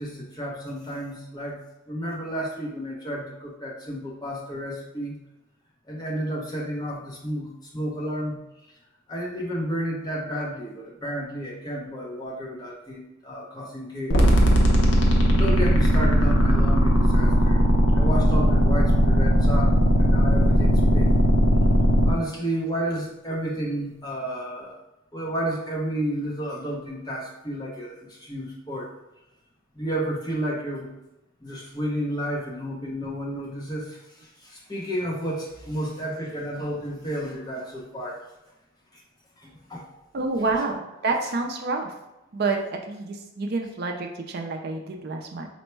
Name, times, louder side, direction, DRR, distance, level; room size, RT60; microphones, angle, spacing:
voice 1, 0.0-1.6 1.9-5.1 5.9-8.4 9.1-14.3 15.3-17.6 17.9-19.7 20.0-21.1 22.1-24.7 25.1-27.9 28.2-28.9 29.8-30.9 31.4-33.9 34.4-38.2 39.4-39.9, equal, 20° left, -3 dB, 0.7 m, -31 dB
sound 1, 14.1-22.1, equal, 70° left, 0.6 m, -18 dB
voice 2, 40.1-41.9 42.3-45.5, right 3 dB, 50° right, 2 dB, 0.4 m, -28 dB
4.3 x 2.1 x 4.4 m, 0.95 s
head